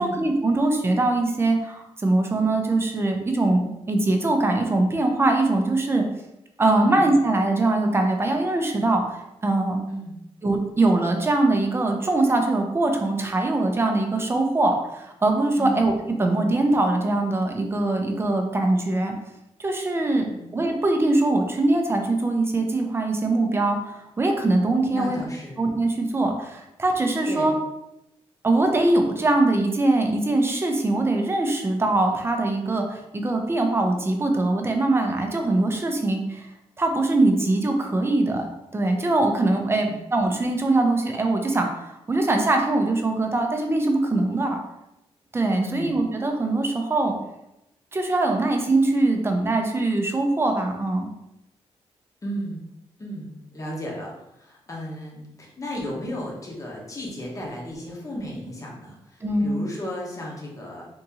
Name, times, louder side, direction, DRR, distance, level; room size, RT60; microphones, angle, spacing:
voice 1, 0.0-6.1 6.6-9.8 10.4-15.9 16.2-19.1 19.6-20.3 20.5-25.2 25.6-27.5 28.4-36.5 36.8-38.5 38.7-44.6 45.3-47.2 47.9-51.1 59.2-59.6, right 2 dB, 20° right, 3 dB, 0.5 m, -22 dB
voice 2, 20.1-20.5 24.9-25.6 27.2-27.5 39.7-40.0 45.6-45.9 52.2-52.6 53.0-60.9, equal, 30° left, -3 dB, 1.0 m, -34 dB
3.5 x 2.7 x 2.8 m, 0.88 s
wide cardioid pair, 115°, 11 cm